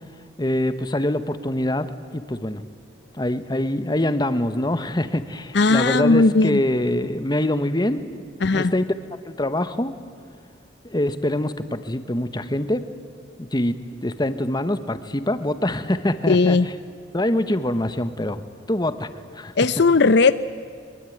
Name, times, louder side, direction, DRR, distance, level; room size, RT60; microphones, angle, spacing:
voice 1, 0.4-1.9 2.1-2.6 3.1-8.1 8.5-8.8 9.2-9.9 10.8-12.8 13.4-13.7 14.0-16.7 17.1-18.4 18.7-19.5, left 1 dB, 20° left, 11 dB, 1.1 m, -24 dB
voice 2, 5.5-6.6 8.4-8.7 16.3-16.7 19.6-20.3, left 3 dB, 60° left, 13 dB, 0.6 m, -17 dB
23.0 x 23.0 x 9.2 m, 2.2 s
head